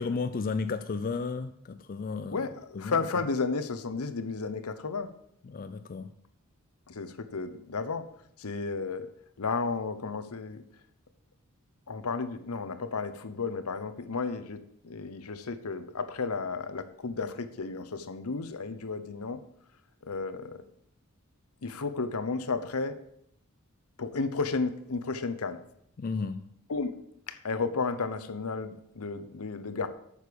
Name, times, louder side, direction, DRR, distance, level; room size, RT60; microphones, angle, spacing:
voice 1, 0.0-2.5 2.7-3.1 5.4-6.1 26.0-26.5, left 4 dB, 40° left, 0.4 m, -33 dB
voice 2, 2.3-5.1 6.9-8.1 8.4-9.1 9.4-10.6 11.9-14.6 14.8-19.4 20.1-20.6 21.6-23.0 24.0-25.6 26.7-26.9 27.3-29.9, left 4 dB, 75° left, 0.9 m, -33 dB
8.4 x 6.6 x 6.8 m
head